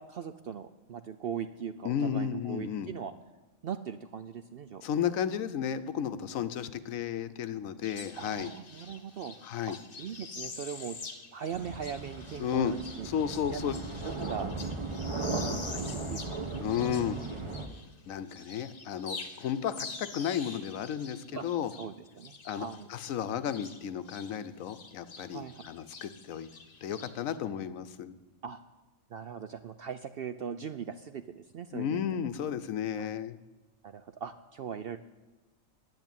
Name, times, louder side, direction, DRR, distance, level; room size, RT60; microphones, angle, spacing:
voice 1, 0.0-3.1 3.6-4.8 8.2-9.3 9.7-11.0 11.3-13.1 13.5-13.6 14.0-14.5 15.3-16.4 16.9-17.0 17.3-17.4 21.3-21.5 21.8-22.9 25.3-25.6 28.4-28.6 29.1-32.2 33.0-33.1 33.8-35.0, right 7 dB, 65° right, 10 dB, 0.6 m, -40 dB
voice 2, 1.8-2.9 4.8-8.5 9.4-9.7 12.4-12.7 13.0-13.8 16.6-17.2 18.1-21.7 22.4-26.5 26.8-28.2 31.7-33.4, left 9 dB, 75° left, 12 dB, 1.1 m, -33 dB
sound 1, 7.8-18.0 18.3-24.4 24.6-27.4, left 4 dB, 45° left, 1.1 m, -46 dB
sound 2, 11.5-17.7, right 3 dB, 25° right, 1.2 m, -37 dB
11.0 x 8.2 x 9.0 m, 1.1 s
omnidirectional pair, 1.4 m